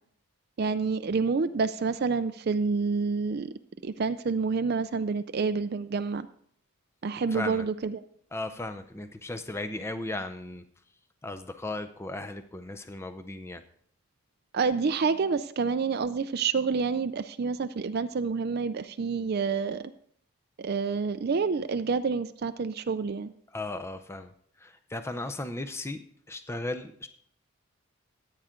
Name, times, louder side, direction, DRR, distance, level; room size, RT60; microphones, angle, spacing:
voice 1, 0.6-3.5 3.8-6.3 7.0-8.0 14.5-19.8 20.6-23.3, right 5 dB, 45° right, 11 dB, 0.4 m, -28 dB
voice 2, 7.3-7.7 8.3-10.6 11.2-13.6 23.5-24.3 24.6-27.1, left 2 dB, 10° left, 8 dB, 0.5 m, -36 dB
14.5 x 9.0 x 3.7 m, 0.63 s
head